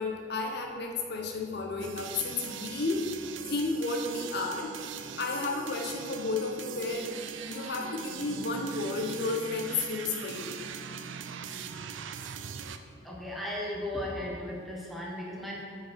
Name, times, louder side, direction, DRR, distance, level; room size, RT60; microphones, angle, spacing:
voice 1, 0.0-3.1 3.4-4.8 5.2-7.1 7.5-10.5, left 3 dB, 60° left, 2 dB, 0.7 m, -32 dB
sound 1, 1.8-12.8, right 7 dB, 85° right, 0.4 m, -41 dB
voice 2, 13.0-15.6, left 1 dB, ahead, -4 dB, 1.2 m, -36 dB
8.2 x 5.2 x 4.5 m, 2.1 s
head